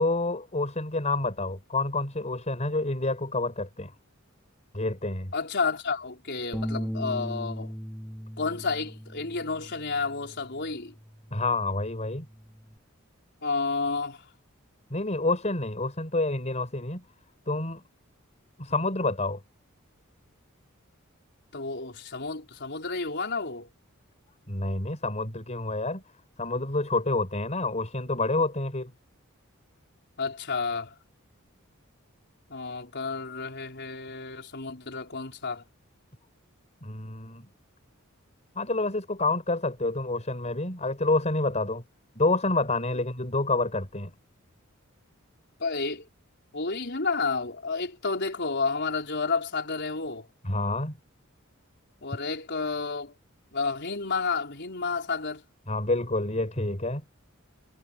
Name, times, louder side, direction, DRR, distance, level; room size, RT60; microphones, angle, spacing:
voice 1, 0.0-3.9 4.7-5.3 11.3-12.3 14.9-17.0 17.5-17.8 18.6-19.4 24.5-26.0 26.4-28.9 36.8-37.5 38.5-41.8 42.1-44.1 50.4-51.0 55.7-57.0, left 2 dB, 35° left, 4.6 m, -28 dB
voice 2, 5.3-7.7 8.4-10.9 13.4-14.2 21.5-23.7 30.2-30.9 32.5-35.6 45.6-46.1 46.5-50.3 52.0-53.1 53.5-55.4, left 4 dB, 55° left, 4.6 m, -31 dB
sound 1, 6.5-12.8, equal, 5° left, 2.0 m, -38 dB
head